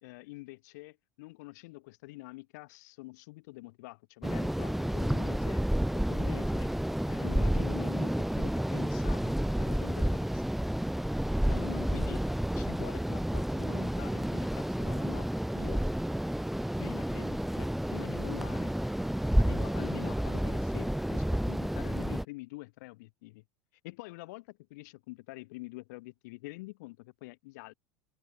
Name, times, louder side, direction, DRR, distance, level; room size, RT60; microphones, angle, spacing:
voice 1, 0.0-5.6 5.9-6.7 7.1-10.5 11.5-15.8 16.8-18.8 19.4-23.4 23.8-27.7, left 22 dB, 60° left, 2.8 m, -46 dB
sound 1, 4.2-22.2, equal, ahead, 2.1 m, -30 dB
open air
figure-of-eight pair, 75°, 10 cm